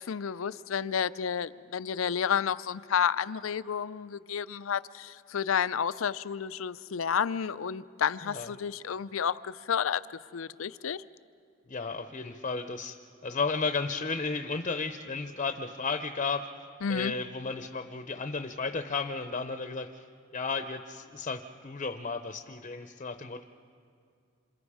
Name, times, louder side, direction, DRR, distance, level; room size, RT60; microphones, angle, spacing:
voice 1, 0.0-11.0 16.8-17.1, left 7 dB, 85° left, 17 dB, 0.5 m, -31 dB
voice 2, 11.7-13.0 13.2-20.1 20.3-23.4, left 4 dB, 35° left, 8 dB, 0.7 m, -34 dB
27.0 x 27.0 x 4.9 m, 2.3 s
head